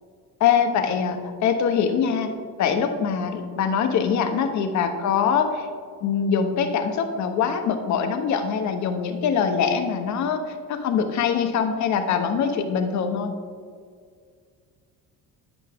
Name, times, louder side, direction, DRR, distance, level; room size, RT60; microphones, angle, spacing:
voice 1, 0.4-2.3 2.6-5.7 6.0-10.4 10.7-13.3, left 7 dB, 55° left, 6 dB, 1.0 m, -23 dB
9.9 x 8.1 x 3.6 m, 2.1 s
cardioid pair, 130°, 34 cm